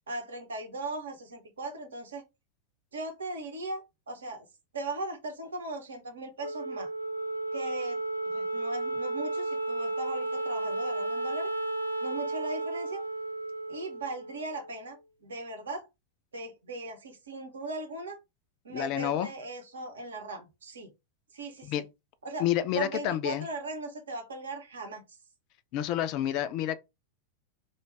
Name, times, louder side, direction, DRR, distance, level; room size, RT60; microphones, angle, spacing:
voice 1, 0.1-2.2 2.9-3.8 4.1-4.5 4.7-6.9 7.5-8.0 8.3-11.5 12.0-13.0 13.7-15.9 16.3-18.2 18.6-20.9 21.3-21.7 22.2-22.5 22.7-25.0, right 2 dB, 70° right, 0.8 m, -38 dB
Wind instrument woodwind instrument, 6.4-15.0, right 2 dB, 85° right, 0.4 m, -33 dB
voice 2, 18.7-19.3 21.6-21.9 22.4-23.5 25.7-26.8, left 11 dB, 40° left, 0.3 m, -29 dB
2.2 x 2.2 x 3.2 m
figure-of-eight pair, 90°, 0 cm